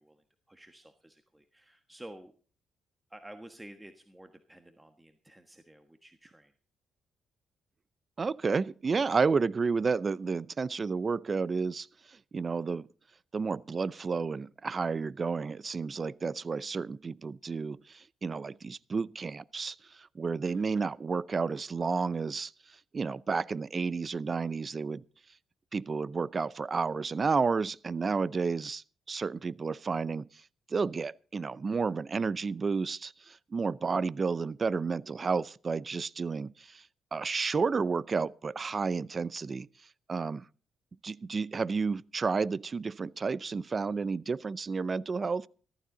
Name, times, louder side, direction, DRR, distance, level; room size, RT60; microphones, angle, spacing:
voice 1, 0.0-2.3 3.1-6.5 20.4-20.8, right 1 dB, 10° right, 1.4 m, -51 dB
voice 2, 8.2-12.9 13.3-22.5 22.9-25.0 25.7-30.3 30.7-36.8 37.1-39.7 40.1-40.4 41.0-45.5, right 4 dB, 35° right, 0.5 m, -31 dB
14.5 x 14.5 x 3.9 m
cardioid pair, 90°, 0 cm